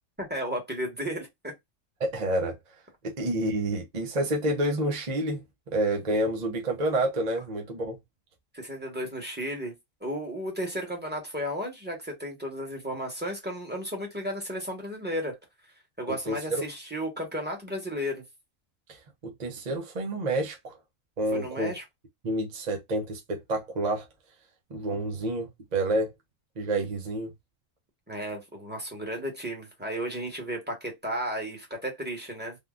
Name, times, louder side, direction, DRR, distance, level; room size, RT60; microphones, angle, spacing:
voice 1, 0.2-1.5 8.5-9.7 10.0-15.4 16.0-18.2 21.3-21.8 28.1-32.6, equal, 10° right, 1.2 m, -34 dB
voice 2, 2.0-2.5 3.0-5.4 5.7-8.0 16.3-16.6 18.9-20.8 21.2-21.7 22.2-24.1 24.7-26.1 26.6-27.3, right 1 dB, 40° right, 0.7 m, -29 dB
3.6 x 2.3 x 2.4 m
omnidirectional pair, 1.4 m